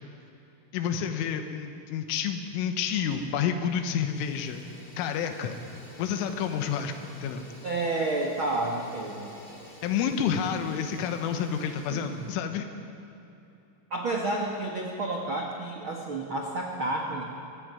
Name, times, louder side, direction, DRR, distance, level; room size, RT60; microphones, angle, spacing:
voice 1, 0.7-4.6 5.0-5.6 6.0-7.5 9.8-12.7, left 8 dB, 85° left, 6 dB, 3.8 m, -29 dB
Fire, 3.0-3.5 3.8-12.5, left 1 dB, 20° left, 5.9 m, -50 dB
voice 2, 7.6-9.3 11.9-12.2 13.9-17.2, right 2 dB, 80° right, 0 dB, 1.1 m, -30 dB
23.5 x 16.0 x 9.8 m, 3.0 s
omnidirectional pair, 5.6 m